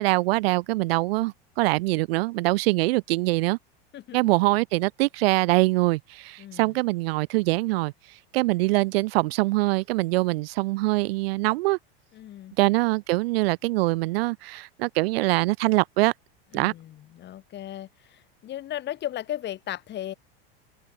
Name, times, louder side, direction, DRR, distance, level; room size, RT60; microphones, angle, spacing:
voice 1, 0.0-3.6 4.1-7.9 8.3-11.8 12.6-16.1 16.5-16.7, right 21 dB, 75° right, 0.5 m, -23 dB
voice 2, 6.4-6.8 12.1-12.5 16.5-20.1, left 12 dB, 35° left, 2.6 m, -36 dB
supercardioid pair, 120°, 30 cm